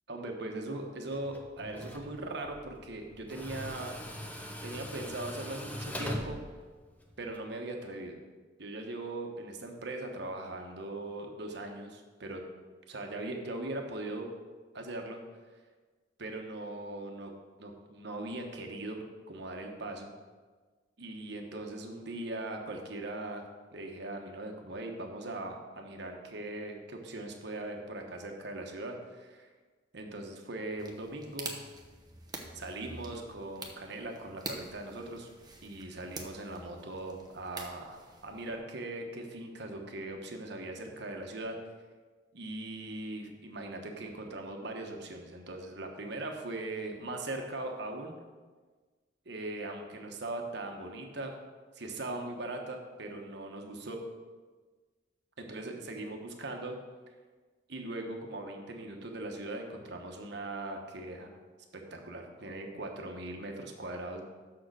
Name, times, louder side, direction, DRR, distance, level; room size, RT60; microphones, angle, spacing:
voice 1, 0.1-3.9 4.6-6.4 7.2-8.2 8.6-12.4 12.9-14.3 14.7-15.2 16.2-17.3 17.6-20.1 21.0-23.4 23.7-29.5 29.9-31.5 32.5-35.3 35.6-41.6 42.3-48.2 49.2-51.3 51.7-54.0 55.4-56.7 57.7-61.3 61.9-64.2, right 2 dB, 65° right, 3 dB, 1.2 m, -40 dB
Tools, 1.1-7.4, equal, 10° left, 0.8 m, -42 dB
sound 1, 30.8-38.6, right 3 dB, 20° right, 0.9 m, -46 dB
6.6 x 6.5 x 6.3 m, 1.4 s
head